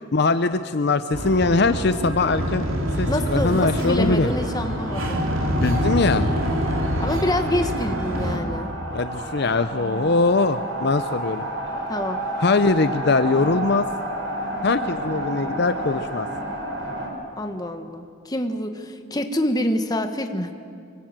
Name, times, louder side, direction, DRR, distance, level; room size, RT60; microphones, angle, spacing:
voice 1, 0.1-2.6 3.0-4.3 5.5-6.3 8.9-11.5 12.4-13.9 14.6-16.3, left 3 dB, 55° left, 11 dB, 0.6 m, -21 dB
sound 1, 1.1-8.4, equal, 85° right, 3.1 m, -26 dB
voice 2, 3.1-5.2 7.0-8.7 11.9-12.2 17.4-20.5, left 1 dB, 20° left, 7 dB, 1.4 m, -26 dB
sound 2, 4.1-17.1, right 1 dB, 65° right, 5.3 m, -31 dB
25.0 x 24.0 x 7.6 m, 2.5 s
head